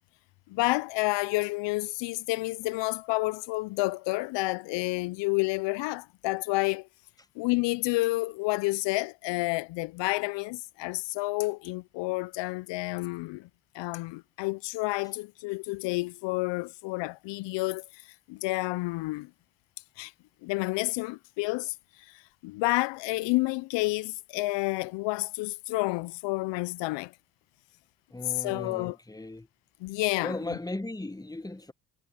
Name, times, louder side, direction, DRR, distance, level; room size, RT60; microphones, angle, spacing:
voice 1, 0.5-6.9 7.4-13.5 13.7-19.3 20.0-20.1 20.4-27.1 28.4-29.0 29.8-30.4, left 22 dB, 70° left, 0.7 m, -30 dB
voice 2, 28.1-29.5 30.2-31.7, left 2 dB, 10° left, 1.5 m, -37 dB
hypercardioid pair, 55°, 45 cm